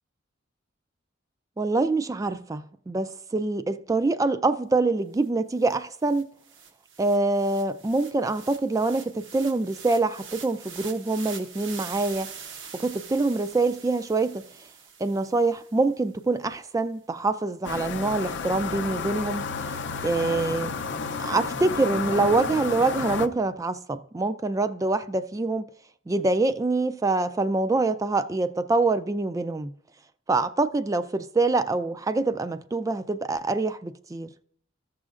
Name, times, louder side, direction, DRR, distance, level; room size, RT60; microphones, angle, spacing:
voice 1, 1.6-6.3 7.0-12.3 12.7-14.4 15.0-19.5 20.0-20.8 21.2-25.6 26.1-29.7 30.3-34.3, right 3 dB, 15° right, 0.3 m, -25 dB
sound 1, 5.2-5.3 5.6-15.9, right 6 dB, 70° right, 0.9 m, -44 dB
sound 2, 17.6-23.3, left 5 dB, 65° left, 0.5 m, -31 dB
14.5 x 6.3 x 2.4 m
head